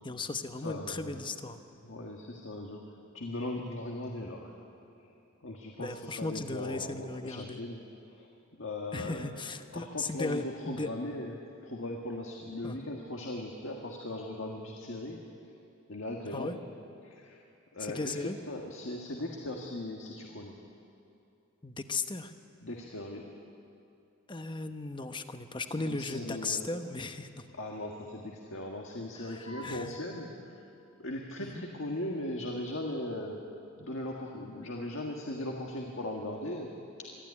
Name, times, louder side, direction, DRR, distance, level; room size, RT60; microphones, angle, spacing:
voice 1, 0.0-1.6 5.8-7.6 8.9-10.9 12.6-12.8 16.2-16.6 17.8-18.4 21.6-22.3 24.3-27.5 29.1-30.0 31.4-31.6, left 3 dB, 25° left, 8 dB, 0.9 m, -37 dB
voice 2, 0.6-1.2 1.8-2.8 3.1-4.5 5.0-5.1 5.4-9.3 9.7-11.3 11.6-15.2 15.9-16.6 17.0-17.4 17.7-18.2 18.5-20.5 22.6-23.2 25.8-26.7 27.6-30.3 31.0-33.4 33.8-36.7 37.0-37.1, left 1 dB, 70° left, 0 dB, 1.8 m, -38 dB
22.5 x 14.5 x 9.8 m, 2.7 s
head